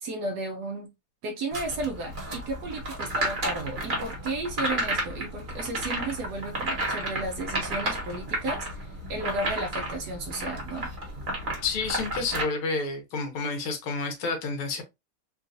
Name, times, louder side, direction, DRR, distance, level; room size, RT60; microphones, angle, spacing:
voice 1, 0.0-0.9 1.2-10.9, right 2 dB, 70° right, 0.9 m, -34 dB
sound 1, 1.5-12.4, right 1 dB, 30° right, 1.0 m, -32 dB
voice 2, 11.6-14.8, left 4 dB, 75° left, 1.7 m, -30 dB
3.8 x 2.4 x 2.6 m
omnidirectional pair, 2.4 m